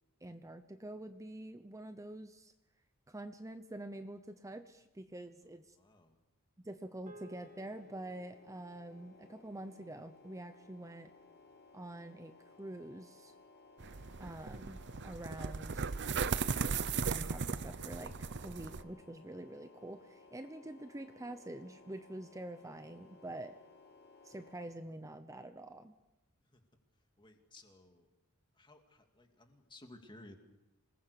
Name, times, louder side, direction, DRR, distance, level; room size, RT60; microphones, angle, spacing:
voice 1, 0.2-2.5 3.1-5.8 6.6-11.1 11.7-12.3 12.6-13.3 14.2-15.9 17.1-23.6 24.2-25.9, right 1 dB, 15° right, 9 dB, 0.8 m, -46 dB
voice 2, 5.8-6.2 26.4-26.6 27.2-28.1 28.6-30.3, left 2 dB, 20° left, 4 dB, 2.6 m, -57 dB
sound 1, 7.1-11.6, right 1 dB, 35° right, 2.1 m, -61 dB
sound 2, 7.4-24.8, left 3 dB, 50° left, 1.8 m, -60 dB
sound 3, 13.8-18.8, right 5 dB, 55° right, 0.8 m, -37 dB
27.0 x 20.0 x 6.9 m, 0.98 s
head